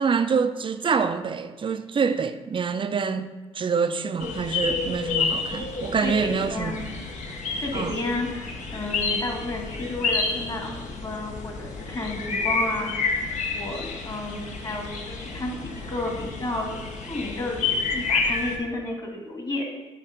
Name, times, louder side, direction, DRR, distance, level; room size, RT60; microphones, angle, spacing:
voice 1, 0.0-3.3 3.5-6.7 7.7-8.0, right 5 dB, 35° right, 0.6 m, -26 dB
sound 1, 4.2-18.6, left 4 dB, 55° left, 1.1 m, -30 dB
voice 2, 6.0-7.0 7.3-12.9 13.5-16.7 17.1-19.7, left 2 dB, 30° left, 1.9 m, -32 dB
8.6 x 2.9 x 5.1 m
hypercardioid pair, 55°, 14 cm